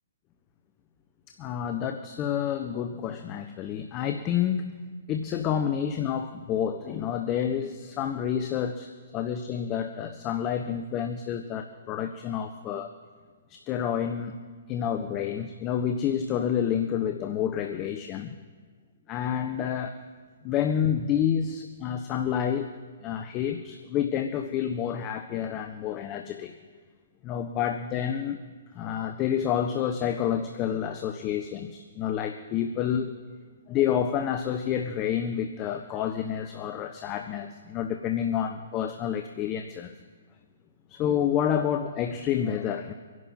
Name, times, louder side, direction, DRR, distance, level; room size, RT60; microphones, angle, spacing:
voice 1, 1.4-4.6 5.1-12.9 13.5-14.4 14.7-18.3 19.1-20.0 20.4-22.7 23.0-26.5 27.2-28.4 28.7-33.1 33.7-39.9 40.9-42.9, left 9 dB, 30° left, 7 dB, 0.9 m, -29 dB
25.0 x 11.0 x 4.4 m, 1.5 s
hypercardioid pair, 130°, 0 cm